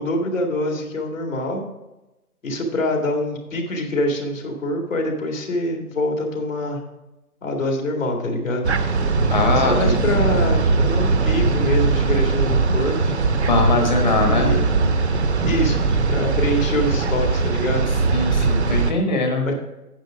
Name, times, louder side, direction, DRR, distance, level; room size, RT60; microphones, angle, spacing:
voice 1, 0.0-1.6 2.4-6.8 7.4-8.7 9.5-13.1 14.2-14.7 15.4-17.9 19.5-19.6, left 1 dB, 55° left, 2 dB, 2.3 m, -25 dB
sound 1, 8.6-18.9, right 4 dB, 45° right, 0.8 m, -20 dB
voice 2, 9.3-10.2 13.5-14.5 18.1-19.5, left 3 dB, 30° left, 3 dB, 1.3 m, -21 dB
9.1 x 6.9 x 4.9 m, 0.98 s
hypercardioid pair, 165°, 46 cm